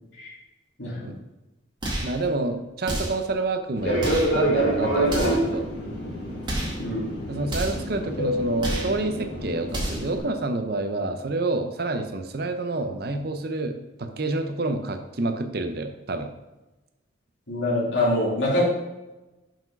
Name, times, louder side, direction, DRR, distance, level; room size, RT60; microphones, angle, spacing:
voice 1, 0.8-1.1 6.8-7.0 17.5-18.6, left 1 dB, 70° left, -5 dB, 2.6 m, -25 dB
sound 1, 1.8-2.2 2.8-3.3 4.0-4.4 5.0-5.5 6.4-6.8 7.5-7.9 8.6-9.0 9.7-10.1, right 1 dB, 25° right, 1.7 m, -30 dB
voice 2, 2.0-4.0 4.3-5.7 7.3-16.3, right 2 dB, 50° right, 7 dB, 0.6 m, -28 dB
Fixed-wing aircraft airplane, 3.8-10.2, right 1 dB, 50° left, 2.3 m, -27 dB
6.0 x 4.9 x 5.3 m, 1.0 s
head